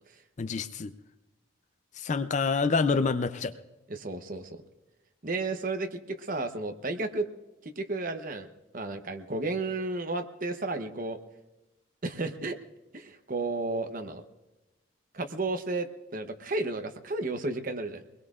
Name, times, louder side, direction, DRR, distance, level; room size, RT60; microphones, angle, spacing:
voice 1, 0.4-0.9 2.0-3.5, left 4 dB, 35° left, 12 dB, 0.4 m, -27 dB
voice 2, 3.9-4.6 5.2-7.3 7.6-8.5 8.7-11.2 12.0-12.6 12.9-14.2 15.1-18.0, right 2 dB, 40° right, 7 dB, 0.8 m, -33 dB
23.5 x 20.5 x 2.5 m, 1.1 s
head